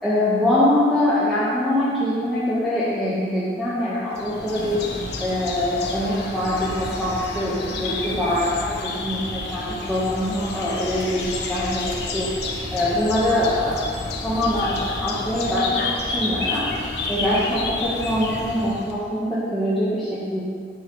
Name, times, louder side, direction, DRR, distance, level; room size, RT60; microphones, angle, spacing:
voice 1, 0.0-4.8 5.2-8.7 9.0-12.3 12.7-13.8 14.2-15.8 16.1-16.7 17.1-20.4, left 1 dB, ahead, -12 dB, 1.3 m, -23 dB
sound 1, 4.1-19.0, left 2 dB, 75° left, 1.0 m, -30 dB
9.7 x 7.5 x 3.2 m, 2.1 s
head